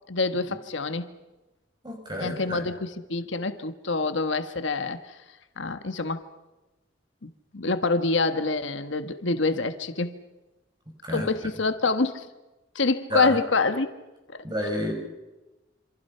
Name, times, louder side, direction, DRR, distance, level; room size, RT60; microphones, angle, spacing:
voice 1, 0.1-1.1 2.2-5.2 5.6-6.2 7.2-10.1 11.1-12.3 12.7-13.9 14.3-14.4, left 3 dB, 70° left, 9 dB, 1.4 m, -26 dB
voice 2, 1.8-2.6 11.0-11.3 13.1-13.4 14.4-14.9, equal, 20° right, 2 dB, 6.6 m, -30 dB
27.0 x 26.5 x 5.7 m, 1.1 s
head